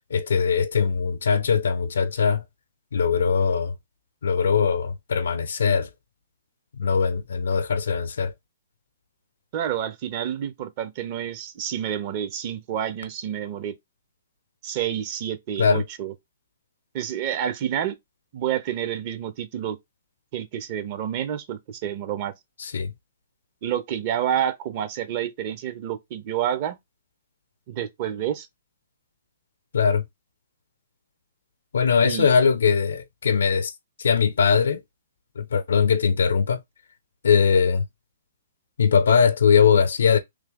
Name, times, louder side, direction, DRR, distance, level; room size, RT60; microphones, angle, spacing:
voice 1, 0.1-2.4 2.9-3.7 4.2-5.9 6.7-8.3 15.6-15.8 22.6-22.9 29.7-30.0 31.7-33.7 34.0-34.8 35.4-36.6 37.2-37.9 38.8-40.2, left 6 dB, 75° left, 0.6 m, -21 dB
voice 2, 9.5-13.7 14.6-16.1 16.9-18.0 18.3-19.8 20.3-22.3 23.6-26.8 27.7-28.5 32.0-32.3, right 10 dB, 40° right, 0.8 m, -29 dB
3.3 x 2.8 x 3.8 m
hypercardioid pair, 130°, 0 cm